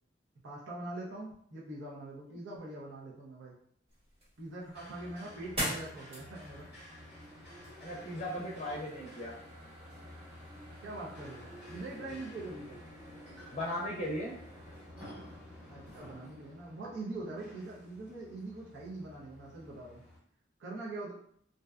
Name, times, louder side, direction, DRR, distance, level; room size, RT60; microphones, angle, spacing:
voice 1, 0.4-3.5 4.4-6.6 10.8-12.8 15.7-20.0 20.6-21.1, right 2 dB, 85° right, -5 dB, 0.6 m, -43 dB
sound 1, 3.9-14.8, equal, 35° right, 1.0 m, -46 dB
sound 2, 4.7-20.2, left 1 dB, 5° right, 1.1 m, -51 dB
voice 2, 7.8-9.3 13.5-14.4, left 1 dB, 35° left, -3 dB, 0.5 m, -37 dB
2.6 x 2.2 x 2.3 m, 0.65 s
head